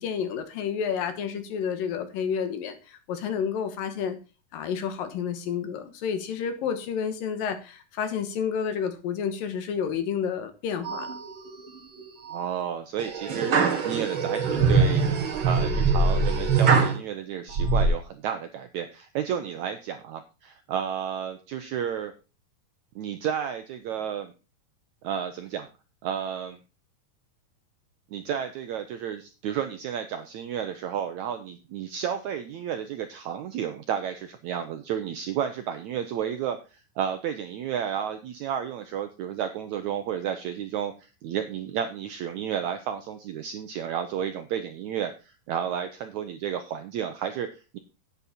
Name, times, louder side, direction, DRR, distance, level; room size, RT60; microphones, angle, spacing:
voice 1, 0.0-4.2 4.5-11.1, left 7 dB, 75° left, 9 dB, 2.9 m, -30 dB
sound 1, 10.8-11.5 12.0-12.4 13.0-17.0 17.5-17.9, right 4 dB, 45° right, 1.9 m, -23 dB
voice 2, 12.3-13.6 13.8-15.0 15.4-22.1 22.9-24.3 25.0-25.7 26.0-26.6 28.1-47.8, right 9 dB, 80° right, 8 dB, 1.7 m, -32 dB
10.5 x 8.8 x 4.3 m, 0.32 s
omnidirectional pair, 4.2 m